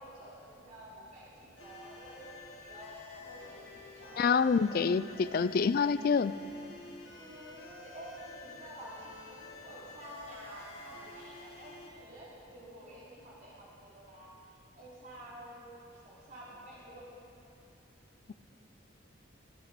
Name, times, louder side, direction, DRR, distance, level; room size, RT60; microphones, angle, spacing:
voice 1, 0.0-4.3 6.8-14.3 14.8-17.1, right 1 dB, 40° right, -7 dB, 3.7 m, -50 dB
sound 1, 1.6-11.9, left 3 dB, 75° left, 2.2 m, -50 dB
voice 2, 4.2-6.4, left 5 dB, 45° left, 15 dB, 0.3 m, -27 dB
14.0 x 13.0 x 5.2 m, 2.7 s
head